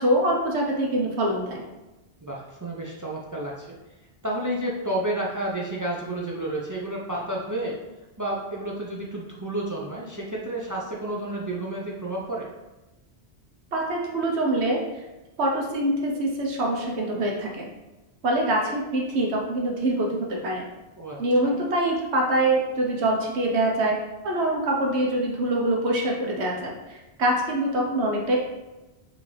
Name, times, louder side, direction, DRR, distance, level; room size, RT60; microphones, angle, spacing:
voice 1, 0.0-1.6 13.7-14.8 15.4-17.7 18.2-20.7 21.2-24.0 24.2-28.4, right 1 dB, 85° right, -1 dB, 1.1 m, -24 dB
voice 2, 2.2-3.7 4.2-7.8 8.2-12.5 21.0-21.5, right 1 dB, 30° right, -3 dB, 0.4 m, -31 dB
5.1 x 2.8 x 3.2 m, 1.1 s
omnidirectional pair, 1.1 m